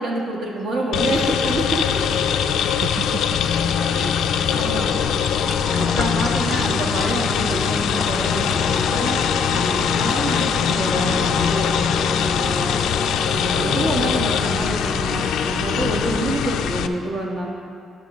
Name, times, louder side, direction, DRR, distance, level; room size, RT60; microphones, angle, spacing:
voice 1, 0.0-2.2 3.7-4.1 4.5-5.0 5.7-9.2 9.5-12.8 13.2-17.5, right 2 dB, 65° right, -1 dB, 1.3 m, -27 dB
sound 1, 0.9-16.9, left 8 dB, 80° left, 0.3 m, -22 dB
voice 2, 2.4-3.6 3.9-4.5 13.5-14.1, right 4 dB, 35° right, 4 dB, 0.3 m, -34 dB
sound 2, 4.3-16.2, left 2 dB, 20° left, 0.5 m, -31 dB
sound 3, 5.0-8.8, equal, 20° right, 1.1 m, -34 dB
10.5 x 3.7 x 6.1 m, 2.5 s
cardioid pair, 90°, 0 cm